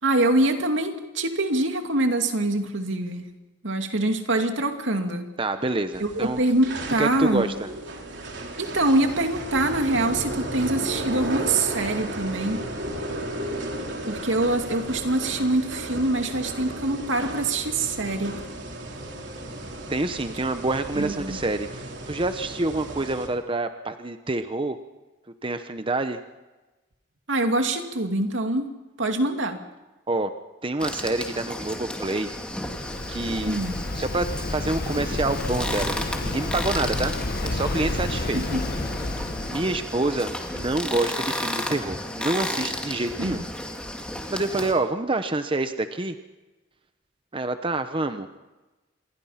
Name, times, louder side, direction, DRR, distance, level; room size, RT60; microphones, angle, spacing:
voice 1, 0.0-3.3 3.6-5.3 6.0-7.5 8.6-12.7 14.1-18.4 21.0-21.4 27.3-28.7 29.0-29.6 33.5-33.8 38.3-38.6 43.2-43.5, right 2 dB, 80° right, 5 dB, 2.5 m, -24 dB
voice 2, 5.4-6.4 7.0-7.7 19.9-24.8 25.4-26.2 30.1-30.3 30.6-32.3 33.1-33.6 34.0-37.1 37.4-38.4 39.5-43.4 44.3-46.2 47.3-48.3, right 2 dB, 25° right, 9 dB, 0.9 m, -27 dB
sound 1, 5.9-23.3, right 1 dB, 65° right, 3.8 m, -34 dB
sound 2, 30.8-44.7, left 1 dB, 5° left, 2.3 m, -33 dB
Waves surf, 32.2-39.9, left 2 dB, 50° left, 1.0 m, -31 dB
27.0 x 21.5 x 5.8 m, 1.1 s
head